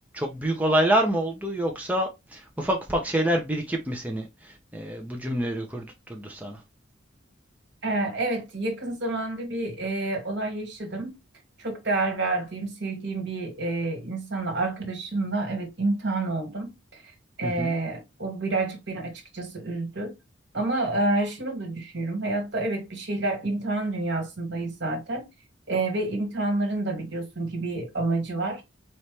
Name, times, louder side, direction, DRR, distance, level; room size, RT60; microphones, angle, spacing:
voice 1, 0.1-6.6 17.4-17.7, right 1 dB, 10° right, 0.6 m, -27 dB
voice 2, 7.8-11.2 11.6-20.2 20.5-25.3 25.7-28.6, right 2 dB, 60° right, 1.6 m, -29 dB
4.3 x 3.1 x 3.2 m
head